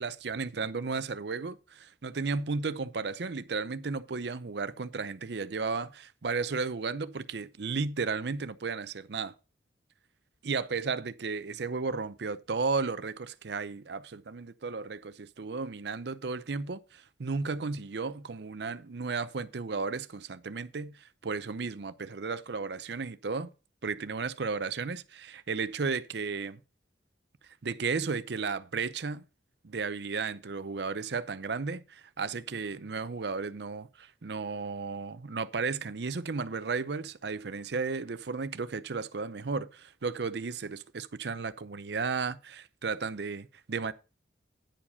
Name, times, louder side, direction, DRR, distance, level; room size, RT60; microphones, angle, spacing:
voice 1, 0.0-9.3 10.4-23.5 23.8-26.6 27.6-29.3 29.6-43.9, right 4 dB, 60° right, 0.6 m, -34 dB
10.0 x 4.8 x 5.5 m
head